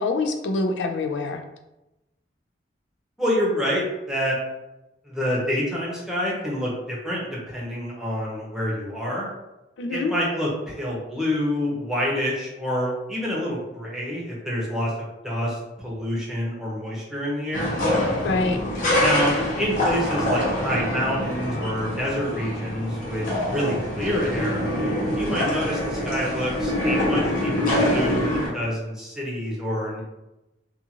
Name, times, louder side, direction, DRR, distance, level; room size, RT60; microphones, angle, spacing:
voice 1, 0.0-1.4 9.8-10.1 18.2-18.6, left 3 dB, 80° left, 6 dB, 0.4 m, -25 dB
voice 2, 3.2-4.4 5.0-9.3 9.9-17.7 19.0-24.6 25.2-30.0, equal, 5° right, -5 dB, 0.7 m, -27 dB
sound 1, 17.5-28.5, left 1 dB, 50° left, 0.8 m, -25 dB
2.5 x 2.4 x 2.9 m, 0.96 s
head